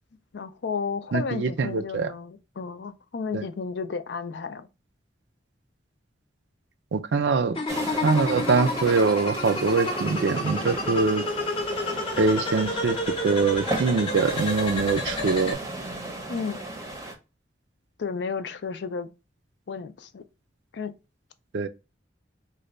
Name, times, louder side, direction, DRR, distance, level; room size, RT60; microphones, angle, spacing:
voice 1, 0.3-4.7 16.3-16.6 18.0-19.1 19.7-20.2 20.7-20.9, left 5 dB, 70° left, 0.4 m, -32 dB
voice 2, 1.1-2.1 3.3-3.5 6.9-7.6 8.0-11.2 12.2-13.0 13.2-15.6 21.5-21.7, right 4 dB, 70° right, 0.4 m, -23 dB
sound 1, 7.6-15.5, left 2 dB, 30° left, 0.7 m, -30 dB
sound 2, 7.7-17.2, right 2 dB, 20° right, 0.6 m, -35 dB
3.2 x 2.2 x 3.8 m
head